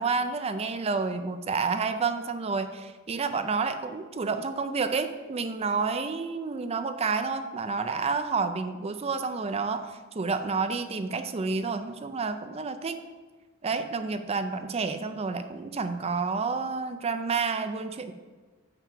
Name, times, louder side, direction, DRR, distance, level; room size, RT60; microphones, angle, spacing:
voice 1, 0.0-13.0 13.6-18.1, right 4 dB, 30° right, 9 dB, 0.4 m, -29 dB
7.3 x 5.8 x 5.8 m, 1.4 s
head